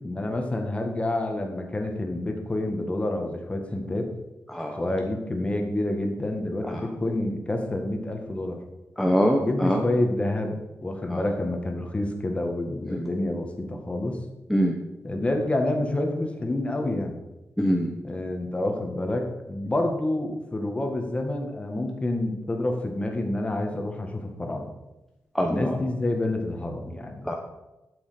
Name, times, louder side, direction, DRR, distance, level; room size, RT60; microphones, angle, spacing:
voice 1, 0.0-4.1 4.8-8.6 9.4-14.2 15.0-17.2 18.0-24.7 25.4-27.4, left 1 dB, 25° left, 3 dB, 1.9 m, -28 dB
voice 2, 4.5-4.8 6.7-6.8 9.0-9.8 11.1-11.2 12.9-13.0 14.5-14.8 17.6-17.9 25.3-25.8 27.2-27.4, equal, 5° left, 1 dB, 1.0 m, -24 dB
12.0 x 7.0 x 5.2 m, 1.0 s
wide cardioid pair, 105°, 5 cm